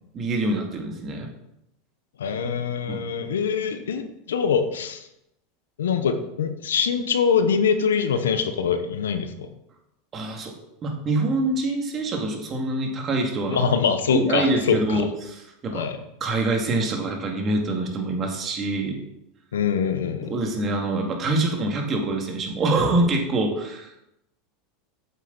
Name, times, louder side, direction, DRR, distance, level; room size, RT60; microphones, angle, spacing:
voice 1, 0.1-1.3 2.9-3.0 10.1-10.5 10.8-13.6 14.1-15.9 16.2-19.0 20.3-23.9, right 2 dB, 35° right, 1 dB, 2.3 m, -25 dB
voice 2, 2.2-5.1 5.8-9.5 13.5-15.1 15.7-16.0 19.5-20.3, left 6 dB, 90° left, 9 dB, 0.9 m, -24 dB
8.2 x 7.6 x 4.1 m, 0.82 s
hypercardioid pair, 105°, 0 cm